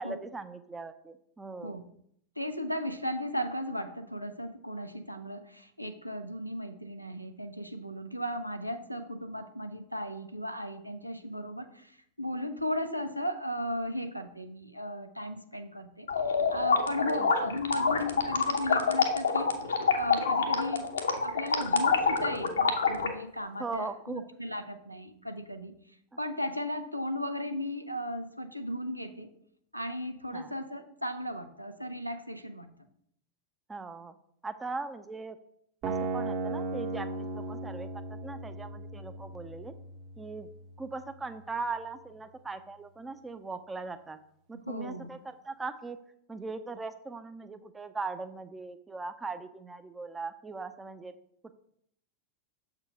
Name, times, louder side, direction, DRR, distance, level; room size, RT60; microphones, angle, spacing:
voice 1, 0.0-1.8 17.2-17.5 23.6-24.2 30.3-30.5 33.7-34.1 34.4-35.4 35.8-39.7 40.2-40.5 40.8-44.2 44.5-46.0 46.3-51.1 51.4-51.5, right 3 dB, 10° right, 10 dB, 0.5 m, -39 dB
voice 2, 2.4-11.9 12.2-16.1 16.5-19.5 19.9-20.9 21.2-25.7 26.2-29.3 29.7-32.7 44.7-45.1, equal, 90° right, 6 dB, 0.6 m, -36 dB
sound 1, 16.1-23.1, left 5 dB, 70° left, 0.8 m, -27 dB
sound 2, 35.8-41.8, right 3 dB, 40° right, 0.9 m, -37 dB
6.8 x 4.5 x 4.9 m, 0.69 s
figure-of-eight pair, 90°, 0 cm